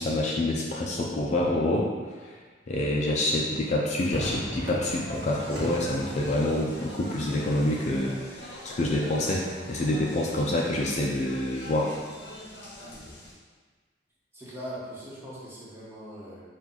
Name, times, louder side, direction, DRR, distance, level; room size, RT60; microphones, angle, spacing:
voice 1, 0.0-1.9 2.2-2.4 2.7-11.9, left 1 dB, 40° left, -2 dB, 0.4 m, -27 dB
Crowd / Fireworks, 4.1-10.7, equal, 90° right, 1.0 m, -40 dB
Speech, 5.1-13.3, left 1 dB, 70° left, 0.9 m, -44 dB
voice 2, 14.3-16.4, equal, 15° right, -8 dB, 1.0 m, -40 dB
4.3 x 2.3 x 3.7 m, 1.5 s
head